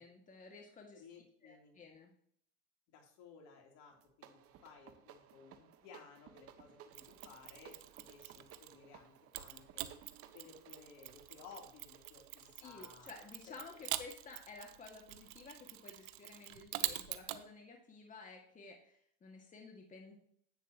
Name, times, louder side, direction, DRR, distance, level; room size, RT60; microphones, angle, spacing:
voice 1, 0.0-1.0 1.4-2.1 12.6-20.2, left 4 dB, 25° left, 1 dB, 2.0 m, -53 dB
voice 2, 0.9-1.8 2.9-9.9 10.3-14.0, left 5 dB, 60° left, 1 dB, 3.2 m, -58 dB
sound 1, 3.9-14.2, right 9 dB, 45° right, 1.3 m, -60 dB
Mechanisms, 6.9-8.8 9.3-17.4, right 16 dB, 70° right, 0.9 m, -45 dB
10.0 x 9.3 x 3.0 m, 0.64 s
supercardioid pair, 100°, 31 cm